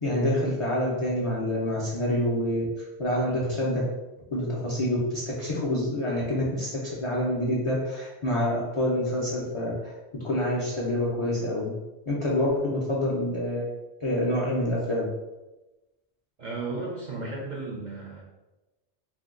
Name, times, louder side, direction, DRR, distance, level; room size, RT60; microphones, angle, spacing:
voice 1, 0.0-3.8 4.3-9.9 10.2-11.7 12.1-13.6 14.0-15.1, left 1 dB, 45° left, -5 dB, 0.4 m, -27 dB
voice 2, 16.4-18.2, right 3 dB, 55° right, -2 dB, 0.5 m, -34 dB
2.6 x 2.2 x 3.6 m, 1.1 s
omnidirectional pair, 1.1 m